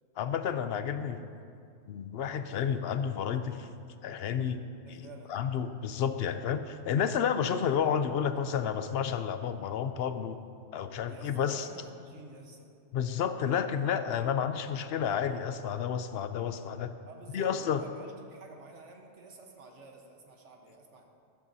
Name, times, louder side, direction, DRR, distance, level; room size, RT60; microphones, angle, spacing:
voice 1, 0.2-1.3 1.9-3.7 4.0-4.6 4.9-10.4 10.7-11.7 12.9-16.9 17.3-17.8, left 8 dB, 65° left, 10 dB, 0.8 m, -31 dB
voice 2, 4.8-5.4 11.1-12.7 17.0-21.0, right 3 dB, 85° right, 2 dB, 1.5 m, -51 dB
14.5 x 12.0 x 2.7 m, 2.4 s
omnidirectional pair, 1.2 m